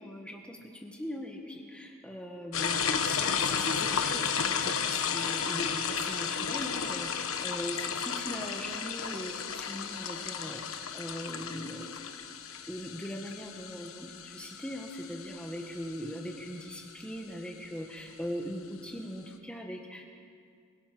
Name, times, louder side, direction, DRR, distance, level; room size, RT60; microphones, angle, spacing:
voice 1, 0.0-11.9 12.7-20.0, equal, 5° left, 1 dB, 1.5 m, -40 dB
sound 1, 2.5-16.9, left 6 dB, 65° left, 1.3 m, -33 dB
22.0 x 22.0 x 6.1 m, 2.2 s
head